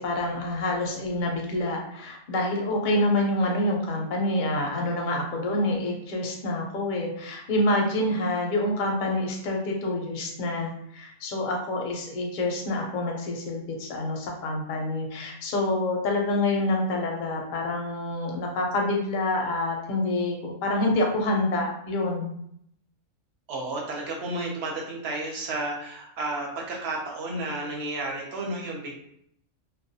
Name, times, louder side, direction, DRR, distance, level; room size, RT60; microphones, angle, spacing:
voice 1, 0.0-22.3, left 1 dB, 55° left, 0 dB, 0.5 m, -27 dB
voice 2, 23.5-28.9, right 2 dB, 60° right, -1 dB, 0.8 m, -32 dB
2.3 x 2.2 x 2.7 m, 0.71 s
omnidirectional pair, 1.4 m